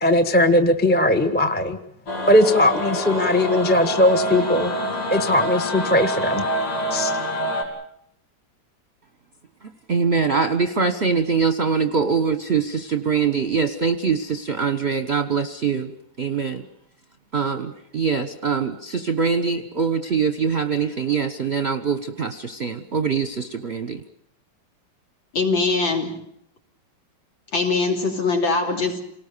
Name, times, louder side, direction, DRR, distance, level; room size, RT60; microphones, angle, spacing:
voice 1, 0.0-1.8 2.3-4.7 5.1-6.4 6.9-7.1, left 1 dB, 5° left, 8 dB, 1.0 m, -19 dB
sound 1, 2.1-7.6, equal, 90° left, 5.5 m, -26 dB
voice 2, 9.9-16.6 17.3-24.0, right 5 dB, 35° right, 8 dB, 1.2 m, -23 dB
voice 3, 25.3-26.2 27.5-29.0, left 3 dB, 60° left, 2 dB, 4.0 m, -22 dB
28.0 x 19.0 x 6.9 m, 0.73 s
omnidirectional pair, 2.3 m